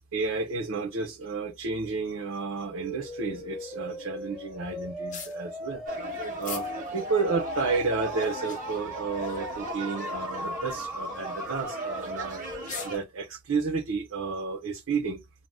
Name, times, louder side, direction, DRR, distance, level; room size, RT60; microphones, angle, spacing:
voice 1, 0.1-5.8 6.1-6.7 6.9-12.4 12.8-15.2, right 4 dB, 80° right, 0.6 m, -31 dB
sound 1, 2.7-12.6, left 1 dB, ahead, 1.4 m, -38 dB
sound 2, 5.1-5.4 6.4-6.7 7.2-7.3 8.1-8.8 9.5-9.8 10.1-10.2 10.9-11.1 12.1-12.2 12.5-13.1, left 6 dB, 35° left, 0.6 m, -40 dB
sound 3, 5.9-13.0, right 2 dB, 35° right, 0.9 m, -37 dB
2.6 x 2.1 x 3.3 m
head